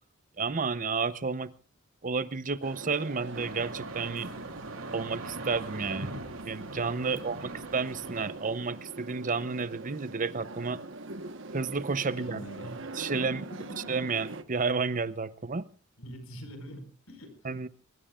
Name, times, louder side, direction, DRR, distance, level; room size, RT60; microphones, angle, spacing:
voice 1, 0.4-1.5 2.0-4.3 4.9-6.1 6.4-7.4 7.7-10.8 11.5-12.4 13.0-13.4 13.9-15.6 17.4-17.7, right 4 dB, 40° right, 0.7 m, -31 dB
sound 1, 2.6-14.4, right 2 dB, 60° right, 1.3 m, -43 dB
sound 2, 3.3-8.3, right 2 dB, 80° right, 3.1 m, -41 dB
voice 2, 7.0-7.5 12.0-14.0 16.0-17.6, equal, 85° left, 5.0 m, -45 dB
23.5 x 21.5 x 2.5 m
head